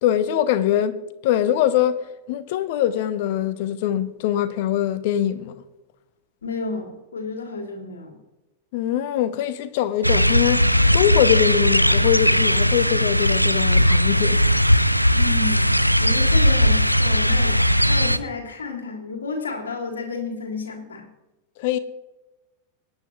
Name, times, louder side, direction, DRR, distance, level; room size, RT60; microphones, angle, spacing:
voice 1, 0.0-2.0 2.3-5.6 8.7-14.4 21.6-21.8, left 11 dB, 50° left, 0.9 m, -22 dB
voice 2, 6.4-8.2 15.1-15.7 16.0-17.6 17.9-21.1, left 4 dB, 70° left, 2.7 m, -31 dB
sound 1, 10.0-18.2, equal, 90° right, 0.5 m, -18 dB
24.5 x 9.6 x 3.2 m
figure-of-eight pair, 90°, 0 cm